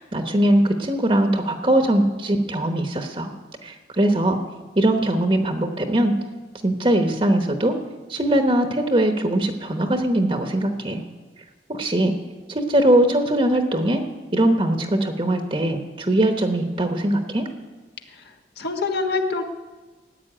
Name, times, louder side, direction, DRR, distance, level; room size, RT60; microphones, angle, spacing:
voice 1, 0.0-3.3 3.6-4.4 4.8-6.1 6.6-7.8 8.1-11.0 11.7-12.1 12.5-14.0 14.3-17.5, right 1 dB, 30° right, 5 dB, 1.0 m, -21 dB
voice 2, 18.6-19.4, left 3 dB, 70° left, 4 dB, 1.6 m, -25 dB
15.0 x 8.3 x 9.8 m, 1.3 s
head